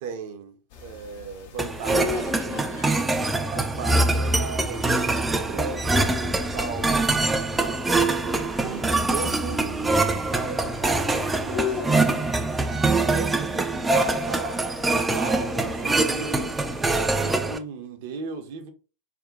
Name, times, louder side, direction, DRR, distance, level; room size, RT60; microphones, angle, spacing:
voice 1, 0.0-2.3 3.5-7.1 7.4-12.1 12.9-14.6 15.0-16.5 16.9-18.7, right 5 dB, 50° right, 0.6 m, -37 dB
sound 1, 0.7-17.3, left 7 dB, 50° left, 0.5 m, -40 dB
sound 2, 1.6-17.6, right 2 dB, 10° right, 0.3 m, -24 dB
voice 2, 1.9-3.4, left 5 dB, 70° left, 1.2 m, -43 dB
2.6 x 2.2 x 3.7 m
figure-of-eight pair, 90°, 0 cm